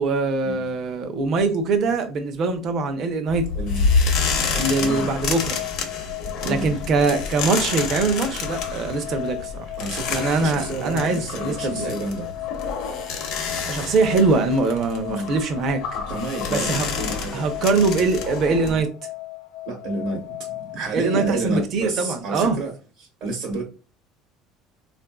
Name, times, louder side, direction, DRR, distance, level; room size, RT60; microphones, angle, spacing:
voice 1, 0.0-3.4 4.5-5.6 6.5-9.7 10.1-11.9 13.4-15.8 16.5-16.9 17.3-18.9 20.9-22.6, right 3 dB, 45° right, 0.6 m, -22 dB
sound 1, 3.3-18.8, left 4 dB, 60° left, 0.8 m, -28 dB
sound 2, 3.4-21.5, left 17 dB, 85° left, 0.3 m, -37 dB
voice 2, 3.5-3.9 4.5-5.1 6.2-6.7 9.8-12.3 15.1-15.3 16.1-17.4 19.7-22.7 23.0-23.7, right 2 dB, 65° right, 1.0 m, -30 dB
3.6 x 2.5 x 2.2 m
cardioid pair, 145°, 0 cm